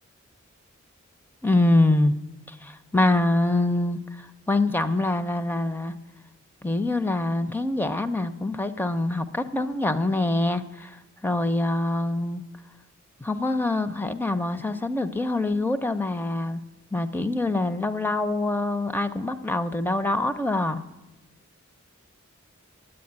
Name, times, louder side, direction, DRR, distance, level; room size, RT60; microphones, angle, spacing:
voice 1, 1.4-2.1 2.5-5.9 6.6-12.4 13.2-16.6 16.9-20.8, left 2 dB, 10° left, 11 dB, 0.4 m, -25 dB
9.0 x 8.7 x 9.4 m, 1.0 s
head